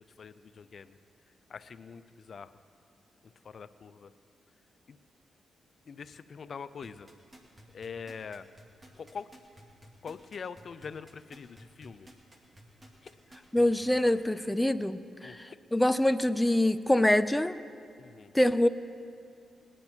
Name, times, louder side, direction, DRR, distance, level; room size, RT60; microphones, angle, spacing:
voice 1, 0.2-1.0 1.5-2.5 3.2-4.1 4.9-5.0 5.9-7.1 7.7-8.5 9.0-9.3 10.0-12.1 13.0-13.1 15.2-15.6 18.0-18.3, left 6 dB, 60° left, 14 dB, 0.5 m, -44 dB
sound 1, 6.8-14.3 14.8-14.9, equal, 25° right, 2.2 m, -54 dB
voice 2, 13.5-17.6 18.3-18.7, left 1 dB, 10° left, 12 dB, 0.5 m, -25 dB
20.0 x 9.9 x 4.4 m, 2.5 s
supercardioid pair, 55°, 0 cm